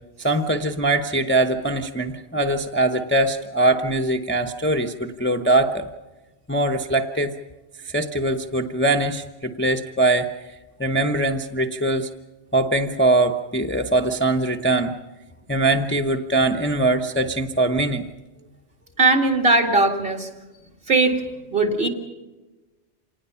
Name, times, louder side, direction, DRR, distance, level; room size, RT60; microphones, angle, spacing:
voice 1, 0.2-5.9 6.5-7.4 7.8-10.3 10.8-12.1 12.5-14.9 15.5-18.0, right 2 dB, 10° left, 5 dB, 0.8 m, -22 dB
voice 2, 19.0-20.3 20.9-21.2 21.5-21.9, right 2 dB, 50° right, 4 dB, 2.5 m, -19 dB
26.5 x 19.5 x 5.7 m, 1.1 s
omnidirectional pair, 1.2 m